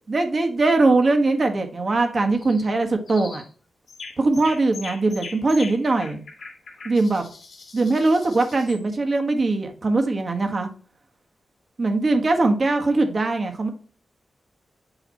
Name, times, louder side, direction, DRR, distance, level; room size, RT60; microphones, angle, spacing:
voice 1, 0.1-3.4 4.2-6.2 6.8-7.3 7.7-10.7 11.8-13.7, right 3 dB, 40° right, 4 dB, 1.4 m, -21 dB
sound 1, 2.3-2.7 3.1-3.5 3.9-8.8, left 4 dB, 75° left, 2.2 m, -41 dB
9.0 x 3.2 x 4.1 m, 0.39 s
wide cardioid pair, 115°, 0 cm